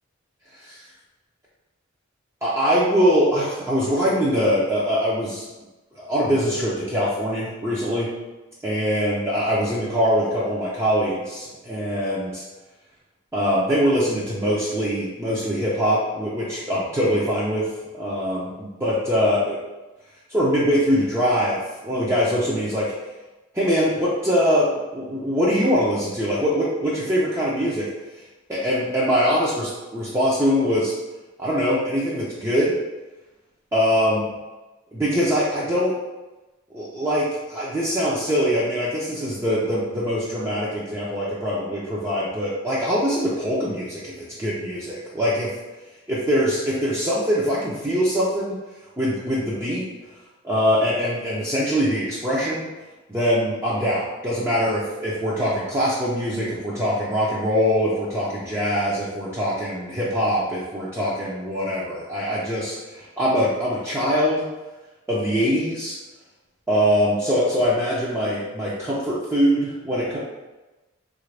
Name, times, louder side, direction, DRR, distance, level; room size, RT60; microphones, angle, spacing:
voice 1, 2.4-5.4 6.0-8.1 8.6-12.4 13.3-17.7 17.9-19.6 20.3-22.9 23.5-27.9 28.1-28.2 28.5-30.9 31.4-32.7 33.7-34.2 34.9-35.9 36.7-45.5 46.1-48.6 49.0-49.9 50.4-52.7 53.1-64.4 65.1-66.0 66.7-70.2, equal, 15° right, -8 dB, 0.5 m, -23 dB
3.4 x 2.5 x 3.2 m, 1.1 s
head